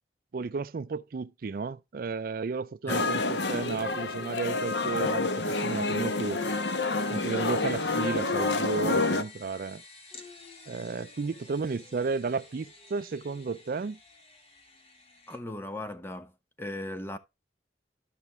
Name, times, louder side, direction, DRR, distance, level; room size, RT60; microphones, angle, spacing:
voice 1, 0.3-6.4 7.1-9.8 10.7-14.0, right 4 dB, 55° right, 0.4 m, -33 dB
sound 1, 2.9-9.2, left 3 dB, 80° left, 1.0 m, -28 dB
sound 2, 5.4-15.4, left 3 dB, 35° left, 2.2 m, -51 dB
voice 2, 15.3-16.3 16.6-17.2, left 1 dB, 15° left, 0.8 m, -37 dB
13.0 x 5.9 x 3.1 m
head